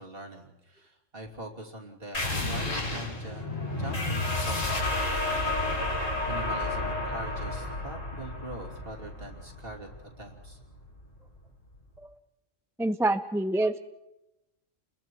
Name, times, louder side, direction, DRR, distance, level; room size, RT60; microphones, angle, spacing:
voice 1, 0.0-10.6, right 1 dB, 50° right, 0 dB, 3.1 m, -43 dB
sound 1, 2.1-11.4, left 2 dB, 90° left, 3.7 m, -31 dB
voice 2, 12.8-13.8, right 2 dB, 5° right, 10 dB, 0.4 m, -26 dB
29.5 x 21.5 x 4.6 m, 0.92 s
omnidirectional pair, 1.3 m